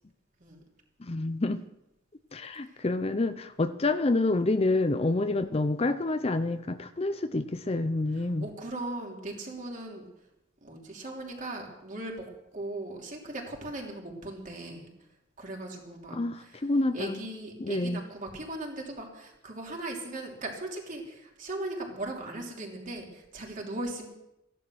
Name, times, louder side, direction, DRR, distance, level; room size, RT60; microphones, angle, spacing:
voice 1, 1.0-1.6 2.3-8.5 16.1-17.2 17.6-18.0, left 2 dB, 30° left, 11 dB, 0.6 m, -28 dB
voice 2, 8.1-10.0 10.6-12.2 12.5-14.9 15.4-24.1, right 2 dB, 40° right, 0 dB, 3.1 m, -38 dB
14.5 x 11.5 x 6.3 m, 0.86 s
head